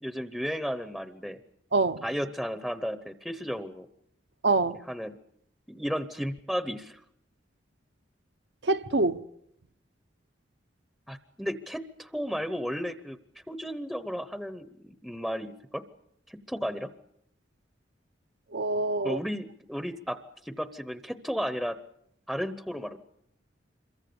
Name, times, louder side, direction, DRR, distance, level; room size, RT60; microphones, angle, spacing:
voice 1, 0.0-1.4 2.0-3.9 4.9-5.1 5.7-7.0 11.1-13.2 13.5-15.8 16.3-16.9 19.0-20.2 20.4-21.8 22.3-23.0, equal, ahead, 0.9 m, -34 dB
voice 2, 1.7-2.0 4.4-4.8 8.6-9.2 18.5-19.2, right 3 dB, 65° right, 0.9 m, -25 dB
26.5 x 23.0 x 7.0 m
head